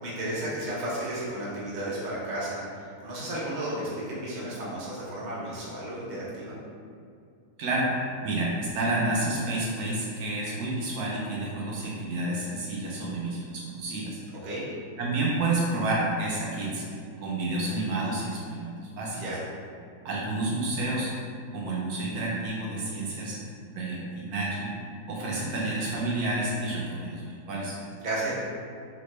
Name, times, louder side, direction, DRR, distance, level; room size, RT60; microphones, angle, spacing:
voice 1, 0.0-6.6 14.4-14.6 19.1-19.4 28.0-28.3, right 1 dB, 40° right, -8 dB, 0.7 m, -33 dB
voice 2, 7.6-7.9 8.2-14.2 15.0-16.8 17.2-19.2 20.0-21.1 21.5-23.4 23.7-24.7 25.1-27.8, right 2 dB, 75° right, -4 dB, 1.0 m, -29 dB
3.1 x 2.9 x 3.1 m, 2.4 s
omnidirectional pair, 1.7 m